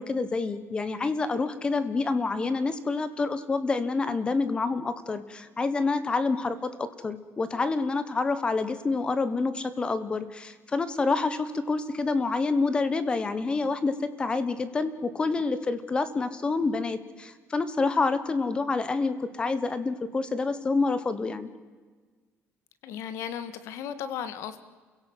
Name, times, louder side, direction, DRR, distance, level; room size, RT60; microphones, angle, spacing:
voice 1, 0.0-21.5, left 3 dB, 20° left, 13 dB, 1.2 m, -28 dB
voice 2, 22.8-24.6, left 8 dB, 65° left, 12 dB, 1.7 m, -35 dB
28.5 x 17.0 x 8.0 m, 1.4 s
cardioid pair, 175°, 5 cm